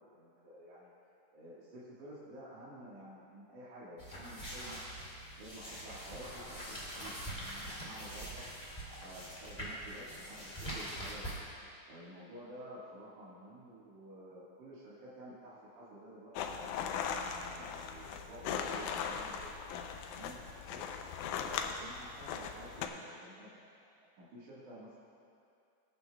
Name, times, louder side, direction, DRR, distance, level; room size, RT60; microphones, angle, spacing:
voice 1, 0.1-0.9 1.3-4.8 5.4-8.4 8.9-11.3 11.9-16.6 17.0-25.0, right 1 dB, 70° right, -10 dB, 3.1 m, -51 dB
sound 1, 4.0-11.4, right 1 dB, 15° left, 1.6 m, -44 dB
sound 2, 16.4-22.9, left 7 dB, 80° left, 2.0 m, -39 dB
19.5 x 8.9 x 2.3 m, 2.5 s
omnidirectional pair, 3.7 m